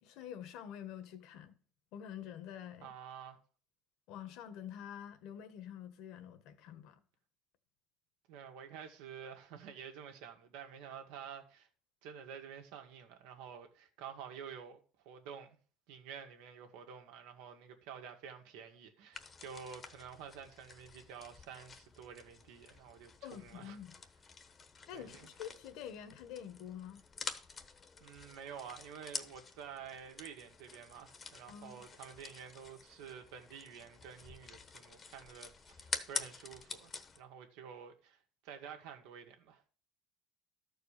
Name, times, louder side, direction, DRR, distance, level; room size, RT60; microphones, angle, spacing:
voice 1, 0.0-1.6 1.9-2.9 4.1-7.0 23.2-23.9 24.9-27.0 31.5-31.8, left 9 dB, 65° left, 1.4 m, -47 dB
voice 2, 2.8-3.4 8.3-11.7 12.0-14.8 15.1-15.6 15.9-23.8 24.9-25.3 28.0-39.6, right 7 dB, 85° right, 1.9 m, -50 dB
sound 1, 19.1-37.2, left 5 dB, 25° left, 1.0 m, -48 dB
13.0 x 4.7 x 6.7 m
cardioid pair, 135°, 0 cm